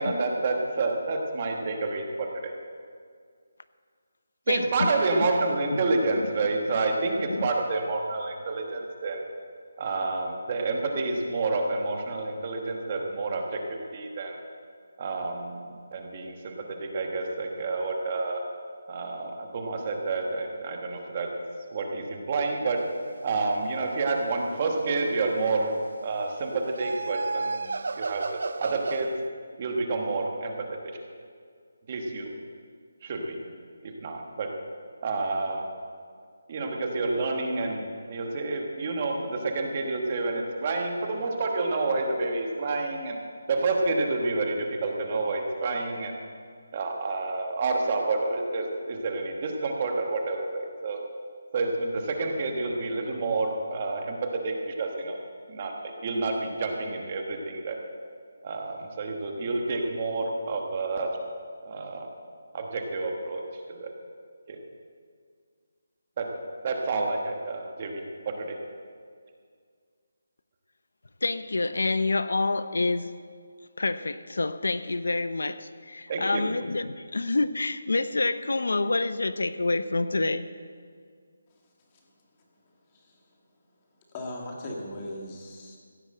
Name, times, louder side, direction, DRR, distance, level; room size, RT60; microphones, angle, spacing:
voice 1, 0.0-2.5 4.5-9.2 9.8-14.4 15.0-18.4 18.9-21.3 21.7-22.8 23.2-27.6 28.0-28.3 28.6-29.1 29.6-30.5 30.8-30.9 31.9-32.3 33.0-33.4 33.8-34.5 35.0-35.6 36.5-43.2 43.5-46.1 46.7-51.0 51.5-54.2 54.4-55.2 55.5-57.8 58.4-61.2 61.6-62.1 62.5-63.4 63.7-63.9 64.5-64.6 66.2-66.3 66.6-68.6 76.1-76.4, right 3 dB, 25° right, 2 dB, 1.2 m, -29 dB
voice 2, 4.5-4.9 5.7-6.3 7.3-7.5 71.2-73.1 73.8-80.5, left 3 dB, 80° left, 13 dB, 0.7 m, -27 dB
sound 1, 24.5-25.5 26.5-29.1, right 3 dB, 55° right, 0.3 m, -33 dB
voice 3, 82.9-83.3 84.1-85.8, left 1 dB, 15° left, -1 dB, 1.7 m, -39 dB
16.0 x 7.9 x 7.7 m, 2.1 s
hypercardioid pair, 180°, 0 cm